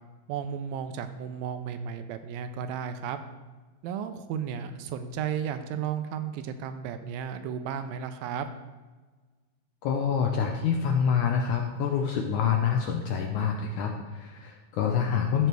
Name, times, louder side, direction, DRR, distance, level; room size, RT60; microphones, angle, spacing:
voice 1, 0.3-3.2 3.8-8.5, right 8 dB, 80° right, 9 dB, 2.3 m, -34 dB
voice 2, 9.8-15.5, left 7 dB, 80° left, 2 dB, 1.7 m, -26 dB
14.0 x 4.6 x 6.1 m, 1.3 s
omnidirectional pair, 4.4 m